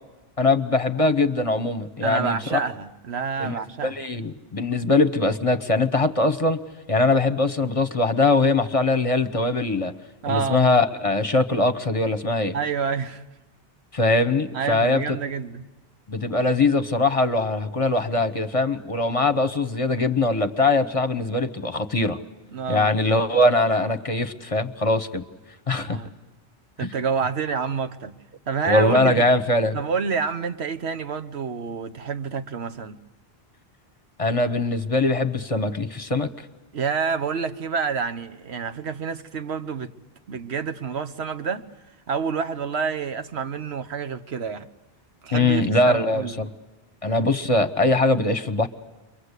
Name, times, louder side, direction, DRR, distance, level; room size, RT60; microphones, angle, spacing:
voice 1, 0.4-2.6 3.4-3.6 3.8-6.6 6.9-9.9 10.3-12.5 13.9-15.0 16.1-22.2 22.7-25.2 25.7-26.0 26.8-26.9 28.6-29.8 34.2-36.3 45.3-46.5 47.0-48.7, left 2 dB, 35° left, 1.0 m, -21 dB
voice 2, 2.0-3.9 10.2-10.7 12.5-13.2 14.5-15.6 22.5-22.9 25.9-26.1 26.8-28.2 28.5-29.3 29.7-33.0 36.7-39.9 40.3-41.6 42.1-44.7 45.2-46.4, right 6 dB, 90° right, 1.3 m, -28 dB
30.0 x 23.5 x 8.2 m
omnidirectional pair, 1.1 m